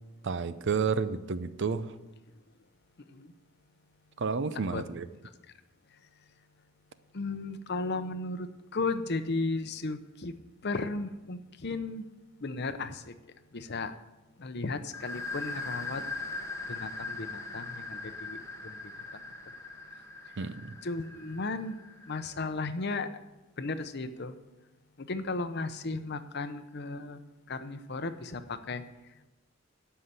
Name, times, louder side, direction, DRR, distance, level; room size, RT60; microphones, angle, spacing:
voice 1, 0.2-1.9 4.2-5.1 20.4-20.7, right 5 dB, 55° right, 14 dB, 0.5 m, -31 dB
voice 2, 7.1-8.5 8.7-10.3 10.6-12.0 12.4-13.1 13.5-13.9 14.4-16.0 16.7-18.8 20.8-21.7 22.1-23.1 23.6-24.3 25.0-27.2 27.5-28.8, left 3 dB, 45° left, 11 dB, 0.7 m, -35 dB
sound 1, 14.9-22.4, left 3 dB, 15° left, 0.9 m, -40 dB
13.0 x 5.7 x 8.1 m, 1.0 s
head